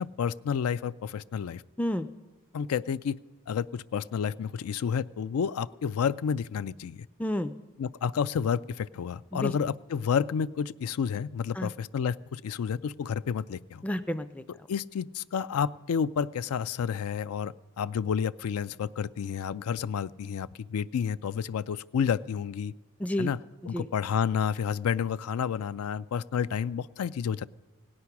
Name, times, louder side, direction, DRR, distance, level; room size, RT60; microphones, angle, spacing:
voice 1, 0.0-1.6 2.5-3.2 3.5-7.1 7.8-13.8 14.7-22.7 23.2-23.4 23.7-27.5, left 7 dB, 85° left, 16 dB, 0.4 m, -30 dB
voice 2, 7.2-7.5 9.3-9.5 11.5-11.7 13.8-14.7 23.0-23.3 23.7-23.9, left 1 dB, 5° left, 9 dB, 0.3 m, -30 dB
17.5 x 9.7 x 5.9 m, 1.3 s
head